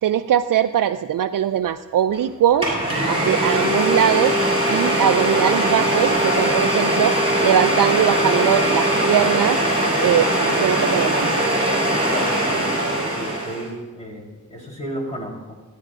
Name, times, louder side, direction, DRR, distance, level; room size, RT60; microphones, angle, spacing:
voice 1, 0.0-2.7 3.0-4.4 4.7-7.2 7.4-9.6 10.0-11.4, right 10 dB, 80° right, 6 dB, 0.5 m, -21 dB
Domestic sounds home sounds, 2.1-2.2 2.6-13.7, right 1 dB, 20° right, 5.0 m, -20 dB
voice 2, 12.1-15.5, equal, 20° left, -2 dB, 3.8 m, -33 dB
29.5 x 10.0 x 2.6 m, 1.3 s
wide cardioid pair, 100°, 32 cm